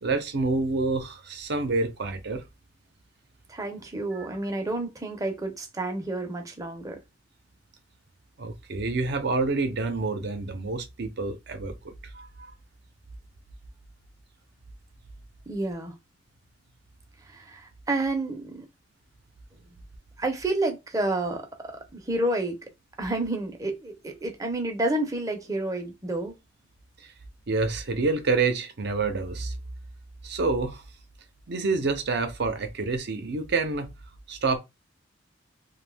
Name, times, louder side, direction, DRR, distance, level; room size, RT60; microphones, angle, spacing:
voice 1, 0.0-2.4 4.1-4.3 8.4-12.3 27.5-29.5 30.2-30.8 31.5-33.9 34.3-34.6, right 3 dB, 60° right, 0.6 m, -27 dB
voice 2, 3.5-7.0 15.5-15.9 17.3-18.7 20.2-22.6 23.0-26.4, right 2 dB, 20° right, 0.6 m, -30 dB
2.6 x 2.3 x 3.4 m
head